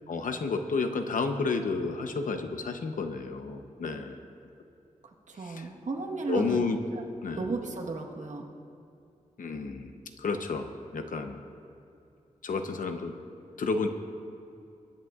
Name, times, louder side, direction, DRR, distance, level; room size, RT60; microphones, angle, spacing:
voice 1, 0.1-4.2 5.4-5.7 6.3-6.8 7.2-7.5 9.4-9.9 10.2-11.4 12.4-13.1 13.6-13.9, left 4 dB, 90° left, 6 dB, 0.8 m, -31 dB
voice 2, 5.3-6.6 6.9-7.0 7.4-8.5, right 3 dB, 70° right, 1 dB, 1.3 m, -34 dB
23.0 x 10.5 x 2.4 m, 2.5 s
wide cardioid pair, 140°, 13 cm